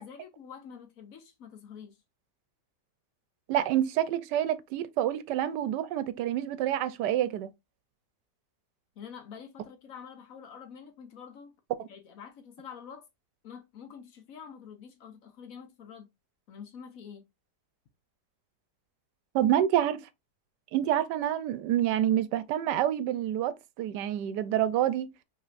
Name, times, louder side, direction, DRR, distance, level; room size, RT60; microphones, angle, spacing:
voice 1, 0.0-2.0 9.0-11.5 11.9-13.0 13.4-16.1 16.5-17.2, left 7 dB, 65° left, 1.1 m, -47 dB
voice 2, 3.5-7.5 19.3-20.0 20.7-25.1, right 11 dB, 85° right, 1.2 m, -27 dB
5.5 x 3.3 x 2.5 m
omnidirectional pair, 1.8 m